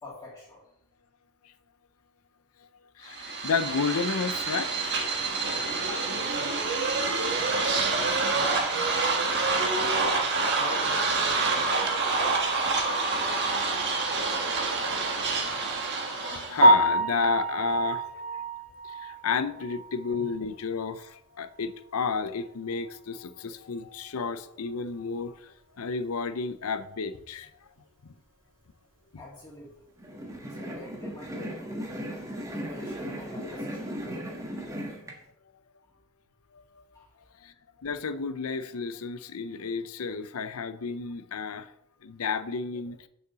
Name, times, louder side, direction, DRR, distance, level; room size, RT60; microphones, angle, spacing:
voice 1, 0.0-0.6 5.9-6.7 7.3-9.3 9.7-10.2 10.5-11.7 19.3-19.5 29.2-29.7 30.4-31.8 32.7-34.0 36.9-37.1, left 2 dB, 20° left, 2.4 m, -46 dB
voice 2, 3.0-5.2 8.5-8.6 9.5-9.7 14.6-18.4 18.8-27.5 28.0-28.1 35.1-35.2 36.5-36.8 37.4-37.5 37.8-41.7 42.0-43.1, left 5 dB, 75° left, 0.6 m, -32 dB
sound 1, 3.1-16.7, right 3 dB, 50° right, 1.5 m, -27 dB
Piano, 16.6-20.6 20.9-21.0 21.5-21.6 22.0-22.1 25.2-25.3 33.8-34.0, right 1 dB, 75° right, 2.7 m, -26 dB
sound 2, 30.0-35.1, equal, 15° right, 1.3 m, -36 dB
6.6 x 5.4 x 6.8 m
head